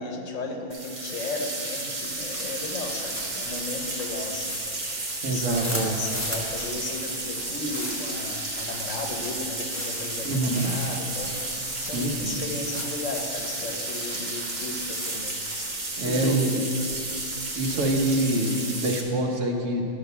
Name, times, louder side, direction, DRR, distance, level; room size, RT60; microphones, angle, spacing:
voice 1, 0.0-4.6 5.2-15.4 16.0-16.5 17.7-17.8, left 3 dB, 75° left, 3 dB, 1.3 m, -35 dB
sound 1, 0.7-19.0, right 2 dB, 40° right, 1.2 m, -32 dB
sound 2, 2.0-16.0, left 1 dB, 15° left, 1.3 m, -39 dB
voice 2, 5.2-6.0 10.2-10.7 11.9-12.4 16.0-16.6 17.6-19.9, right 2 dB, 75° right, 2 dB, 1.4 m, -25 dB
11.5 x 5.1 x 6.8 m, 2.9 s
omnidirectional pair, 1.3 m